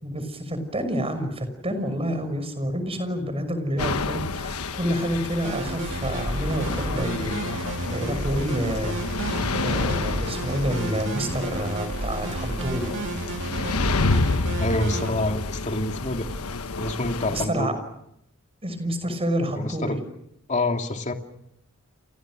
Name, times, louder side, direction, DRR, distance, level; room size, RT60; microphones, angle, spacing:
voice 1, 0.0-7.6 7.9-9.1 9.6-12.9 17.3-17.8 18.6-20.0, equal, 25° right, 10 dB, 5.9 m, -28 dB
sound 1, 3.8-17.5, left 3 dB, 85° left, 1.3 m, -29 dB
sound 2, 5.4-15.1, right 2 dB, 60° right, 2.6 m, -32 dB
voice 2, 14.6-16.3 16.8-17.7 19.6-20.0 20.5-21.1, left 2 dB, 35° left, 4 dB, 2.7 m, -27 dB
29.5 x 29.0 x 6.3 m, 0.77 s
head